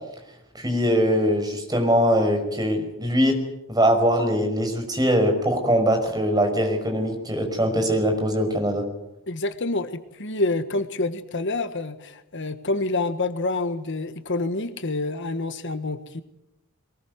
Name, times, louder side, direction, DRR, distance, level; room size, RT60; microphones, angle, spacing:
voice 1, 0.5-3.4 3.7-8.8, equal, 20° right, 4 dB, 5.6 m, -22 dB
voice 2, 9.3-16.2, left 2 dB, 55° left, 10 dB, 1.5 m, -27 dB
22.5 x 20.0 x 9.5 m, 0.86 s
head